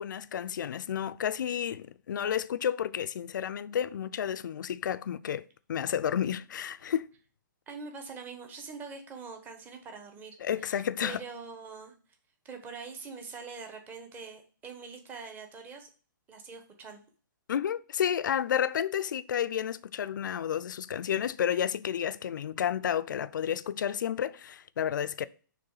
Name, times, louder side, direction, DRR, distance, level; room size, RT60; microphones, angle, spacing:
voice 1, 0.0-7.1 10.4-11.2 17.5-25.3, left 9 dB, 70° left, 0.5 m, -31 dB
voice 2, 7.7-11.9 12.4-15.9 16.3-17.0, right 5 dB, 15° right, 1.1 m, -44 dB
6.8 x 3.2 x 5.6 m
hypercardioid pair, 145°, 11 cm